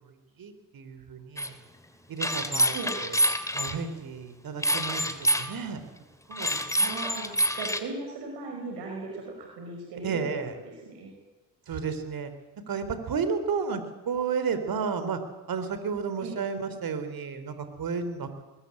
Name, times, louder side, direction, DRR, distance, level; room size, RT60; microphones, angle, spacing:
voice 1, 0.0-1.6 2.1-3.2 3.5-5.9 6.3-6.8 10.0-10.5 11.7-12.3 12.7-15.2 15.5-18.4, right 5 dB, 60° right, 10 dB, 3.8 m, -32 dB
sound 1, 1.4-1.5 2.2-3.7 4.6-5.5 6.3-7.8, equal, 10° left, 3.0 m, -26 dB
voice 2, 6.8-10.2 10.8-11.1 16.2-16.4, right 3 dB, 85° right, 1 dB, 5.5 m, -37 dB
21.5 x 19.5 x 8.6 m, 1.1 s
supercardioid pair, 70°, 40 cm